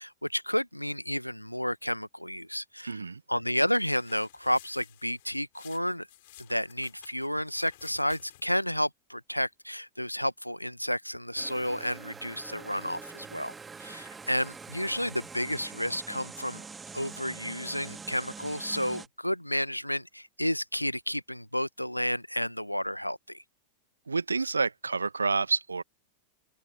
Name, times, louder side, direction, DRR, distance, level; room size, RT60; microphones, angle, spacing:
voice 1, 0.0-3.0 3.3-6.1 6.5-13.5 13.8-16.6 16.9-23.4, equal, 90° left, 1.2 m, -31 dB
voice 2, 2.8-3.2 24.1-25.8, right 4 dB, 75° right, 1.8 m, -29 dB
sound 1, 3.7-8.7, left 17 dB, 55° left, 6.5 m, -55 dB
sound 2, 11.4-19.1, right 5 dB, 15° right, 2.0 m, -45 dB
open air
figure-of-eight pair, 90°, 0 cm